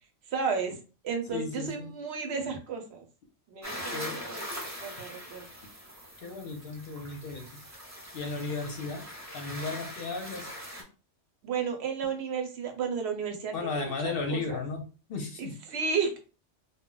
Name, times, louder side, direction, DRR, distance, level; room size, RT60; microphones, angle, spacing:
voice 1, 0.3-0.8 1.0-3.0 3.5-4.4 4.8-5.5 11.4-14.6 15.4-16.2, right 5 dB, 65° right, 4 dB, 0.8 m, -33 dB
voice 2, 1.3-1.9 3.9-4.2 6.2-7.6 8.1-9.0 9.3-10.5 13.5-14.8 15.1-15.5, left 4 dB, 60° left, 3 dB, 0.7 m, -34 dB
sound 1, 3.6-10.8, equal, 20° right, 0.5 m, -42 dB
2.2 x 2.0 x 3.7 m, 0.35 s
omnidirectional pair, 1.2 m